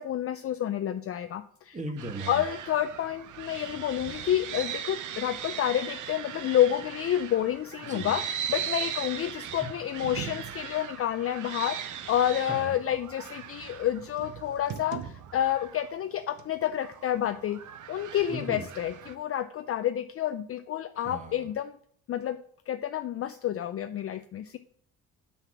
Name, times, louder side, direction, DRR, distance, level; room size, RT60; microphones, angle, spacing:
voice 1, 0.0-1.8 2.3-8.2 8.5-17.6 17.9-21.8 22.1-22.4 22.7-24.6, left 11 dB, 40° left, 10 dB, 0.4 m, -29 dB
voice 2, 1.7-2.4 7.8-8.1 12.4-12.7 18.3-18.6 21.0-21.4, right 1 dB, 20° right, 4 dB, 1.6 m, -37 dB
sound 1, 2.0-19.1, right 9 dB, 60° right, 0.9 m, -39 dB
5.8 x 5.7 x 5.7 m, 0.63 s
supercardioid pair, 75°, 35 cm